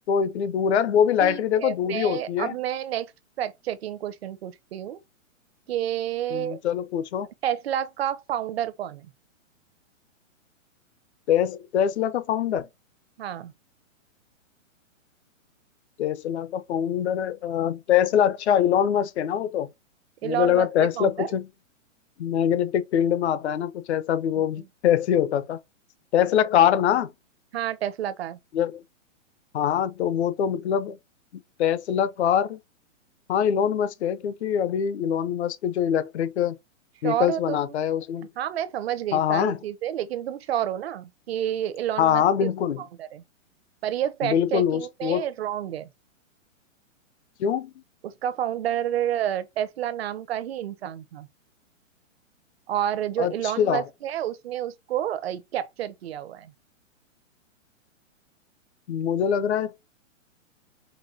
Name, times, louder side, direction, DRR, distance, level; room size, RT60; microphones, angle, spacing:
voice 1, 0.1-2.5 6.3-7.3 11.3-12.7 16.0-19.7 20.2-21.5 22.2-25.6 26.1-27.1 28.5-28.8 29.5-31.0 31.6-32.6 33.3-36.6 37.0-38.3 39.1-39.6 42.0-42.8 44.2-45.2 47.4-47.7 53.2-53.8 58.9-59.8, left 9 dB, 55° left, 0.7 m, -23 dB
voice 2, 1.2-3.1 3.4-5.0 5.7-6.6 7.4-9.1 13.2-13.5 20.2-21.3 24.6-24.7 27.5-28.4 37.0-37.7 38.4-42.5 42.8-43.2 43.8-45.9 48.0-51.3 52.7-56.5, right 11 dB, 50° right, 0.7 m, -29 dB
5.3 x 2.2 x 2.6 m
hypercardioid pair, 155°, 39 cm